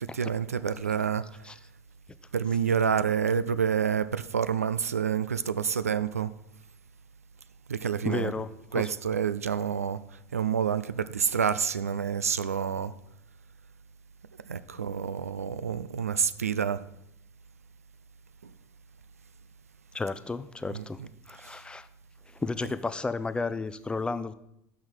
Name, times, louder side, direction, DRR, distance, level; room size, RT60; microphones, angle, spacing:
voice 1, 0.0-1.5 2.3-6.3 7.7-8.4 8.7-12.9 14.5-16.9 18.4-18.5 20.7-21.1 21.4-21.6 22.6-22.7, right 7 dB, 85° right, 14 dB, 0.4 m, -28 dB
voice 2, 8.0-8.8 19.9-21.0 21.3-21.9 22.4-24.3, left 3 dB, 10° left, 13 dB, 0.5 m, -32 dB
6.3 x 6.0 x 7.3 m, 0.79 s
figure-of-eight pair, 75°, 8 cm